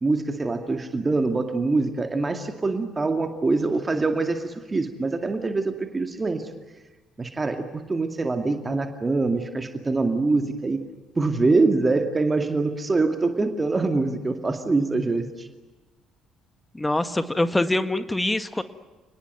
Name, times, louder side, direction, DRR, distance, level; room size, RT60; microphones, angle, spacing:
voice 1, 0.0-6.5 7.2-10.8 11.2-15.5, right 3 dB, 25° right, 6 dB, 2.3 m, -24 dB
voice 2, 16.7-18.6, left 2 dB, 15° left, 11 dB, 1.8 m, -24 dB
28.5 x 20.0 x 9.3 m, 1.2 s
hypercardioid pair, 50°, 0 cm